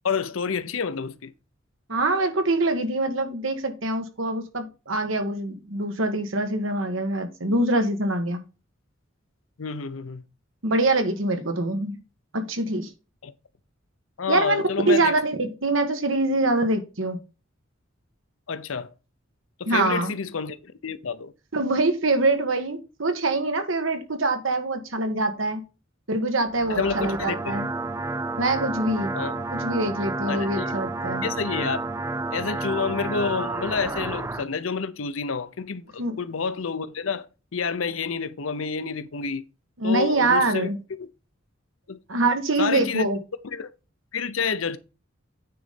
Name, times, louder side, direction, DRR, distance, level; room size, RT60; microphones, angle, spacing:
voice 1, 0.0-1.3 9.6-10.2 13.2-13.3 14.2-15.2 18.5-18.9 19.6-21.3 26.7-27.6 29.1-29.4 30.3-30.8 31.2-31.8 32.3-37.3 37.5-39.4 39.8-40.7 41.0-41.1 41.9-42.0 42.6-43.1 43.4-43.7 44.1-44.8, left 5 dB, 90° left, 0.7 m, -29 dB
voice 2, 1.9-8.4 10.6-12.0 12.3-12.9 14.3-17.2 19.7-20.1 21.5-25.6 26.1-27.7 28.4-29.1 29.5-31.3 36.0-36.2 39.8-40.8 42.1-43.2, right 2 dB, 75° right, 1.6 m, -24 dB
sound 1, 26.5-34.5, right 3 dB, 15° right, 0.3 m, -30 dB
9.4 x 4.1 x 5.1 m
head